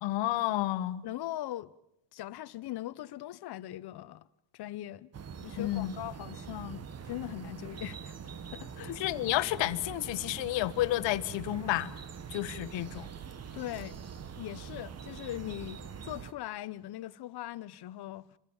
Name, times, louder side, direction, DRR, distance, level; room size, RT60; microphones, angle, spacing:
voice 1, 0.0-1.0 5.6-5.9 8.9-11.9 12.3-13.1, left 15 dB, 85° left, 1.4 m, -31 dB
voice 2, 1.0-1.7 2.1-4.3 4.5-5.1 5.4-8.1 8.5-9.0 13.5-14.0 14.4-18.3, left 14 dB, 60° left, 1.0 m, -40 dB
sound 1, 5.1-16.3, right 7 dB, 35° right, 1.2 m, -44 dB
28.0 x 22.5 x 7.2 m
cardioid pair, 125°, 43 cm